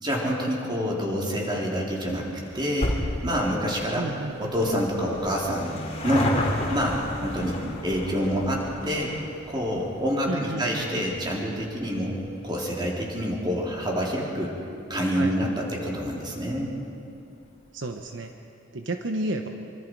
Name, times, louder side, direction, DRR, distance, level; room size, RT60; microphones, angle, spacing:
voice 1, 0.0-3.0 3.2-4.1 4.4-5.7 6.0-6.3 6.7-9.1 9.5-12.2 12.4-14.5 14.9-16.7, equal, 25° right, -2 dB, 3.7 m, -27 dB
sound 1, 2.0-14.8 15.1-15.2 16.1-16.2 16.4-16.5 16.7-16.8, left 1 dB, 35° left, 2.9 m, -34 dB
voice 2, 3.9-4.8 10.3-11.1 15.2-15.5 17.7-18.3 18.7-19.5, right 2 dB, 75° right, 5 dB, 1.1 m, -32 dB
25.0 x 24.5 x 4.8 m, 2.6 s
head